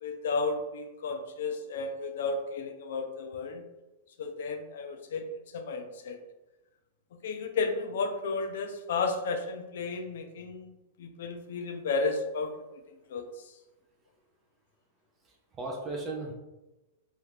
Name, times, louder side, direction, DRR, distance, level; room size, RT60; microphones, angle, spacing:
voice 1, 0.0-3.6 4.2-6.2 7.2-10.7 11.0-13.5, left 4 dB, 70° left, 6 dB, 0.4 m, -33 dB
voice 2, 15.2-16.3, right 2 dB, 15° right, -1 dB, 0.4 m, -36 dB
2.8 x 2.4 x 3.3 m, 1.0 s
supercardioid pair, 165°, 0 cm